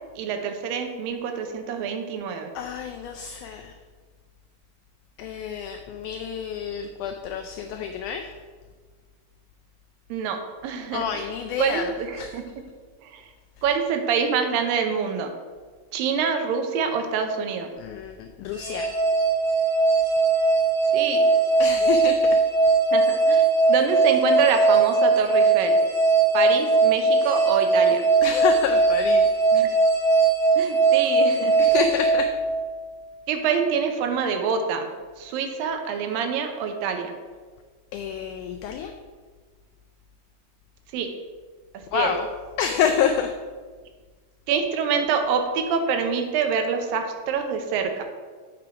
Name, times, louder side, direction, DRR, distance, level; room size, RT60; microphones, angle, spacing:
voice 1, 0.2-2.5 10.1-11.1 11.6-12.4 13.1-13.2 13.6-15.3 15.9-17.7 20.9-21.2 22.9-25.8 26.3-28.0 29.5-29.7 30.6-31.9 33.3-34.9 35.2-37.1 40.9-41.1 41.9-42.1 44.5-48.0, right 6 dB, 80° right, 6 dB, 2.5 m, -26 dB
voice 2, 2.6-3.7 5.2-8.3 10.9-12.4 17.8-18.9 21.6-22.2 28.2-29.3 31.6-32.3 37.9-38.9 41.9-42.3 42.6-43.3, left 8 dB, 90° left, 5 dB, 1.7 m, -28 dB
sound 1, 18.5-32.9, right 3 dB, 40° right, 2.7 m, -20 dB
7.6 x 5.8 x 4.8 m, 1.5 s
omnidirectional pair, 4.1 m